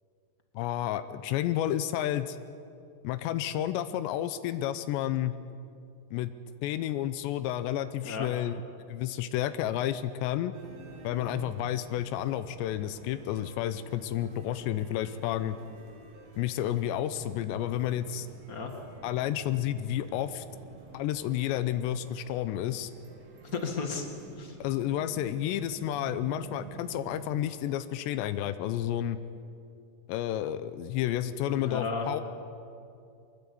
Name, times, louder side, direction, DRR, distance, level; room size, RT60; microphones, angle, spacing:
voice 1, 0.5-2.4 3.0-5.4 6.1-6.3 6.6-8.6 8.9-10.5 11.0-15.6 16.4-18.3 19.0-20.5 20.9-22.9 24.6-29.2 30.1-32.2, left 12 dB, 85° left, 12 dB, 3.0 m, -31 dB
sound 1, 10.5-27.4, right 5 dB, 80° right, 5.0 m, -49 dB
voice 2, 23.5-24.1 24.4-24.6 31.5-32.1, left 5 dB, 65° left, 3 dB, 0.8 m, -33 dB
24.0 x 21.0 x 8.6 m, 2.5 s
omnidirectional pair, 5.0 m